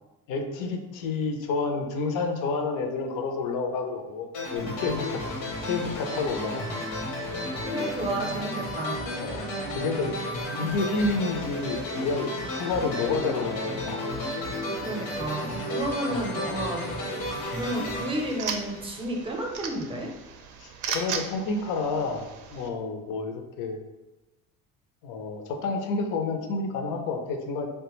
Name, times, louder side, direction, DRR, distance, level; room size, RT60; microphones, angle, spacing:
voice 1, 0.3-5.2 5.6-6.6 9.1-10.1 10.6-14.0 16.1-16.3 20.6-23.8 25.0-27.7, left 3 dB, 70° left, 4 dB, 0.6 m, -29 dB
sound 1, 4.3-19.2, left 1 dB, 90° left, 0.9 m, -33 dB
voice 2, 7.7-9.0 14.8-17.0 17.5-20.1, right 1 dB, 15° right, 1 dB, 0.6 m, -32 dB
sound 2, 17.3-22.7, right 6 dB, 65° right, 0.5 m, -37 dB
3.3 x 2.2 x 3.0 m, 1.0 s
cardioid pair, 105°, 33 cm